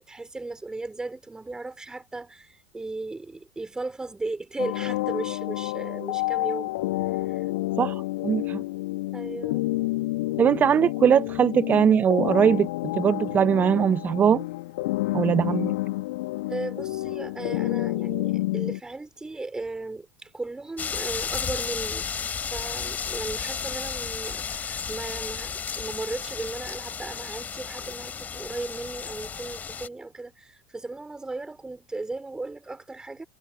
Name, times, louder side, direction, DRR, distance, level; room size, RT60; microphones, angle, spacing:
voice 1, 0.0-6.8 7.2-7.4 9.1-9.7 16.5-22.1 22.4-33.2, right 3 dB, 10° right, 4.9 m, -36 dB
sound 1, 4.6-18.8, left 19 dB, 65° left, 2.0 m, -29 dB
voice 2, 7.8-8.6 10.4-14.4 15.1-15.7, right 8 dB, 30° right, 0.8 m, -21 dB
sound 2, 20.8-29.9, left 6 dB, 25° left, 2.9 m, -33 dB
figure-of-eight pair, 80°, 6 cm